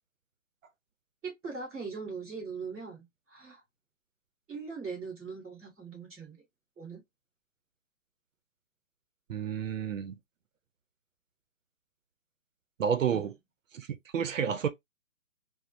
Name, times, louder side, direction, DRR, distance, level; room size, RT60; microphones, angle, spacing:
voice 1, 1.2-3.6 4.5-6.4 6.8-7.0 13.1-13.2, right 5 dB, 10° right, 1.2 m, -40 dB
voice 2, 9.3-10.2 12.8-13.3 13.7-13.9 14.1-14.7, right 7 dB, 80° right, 0.6 m, -30 dB
3.0 x 2.0 x 2.5 m
hypercardioid pair, 170°, 38 cm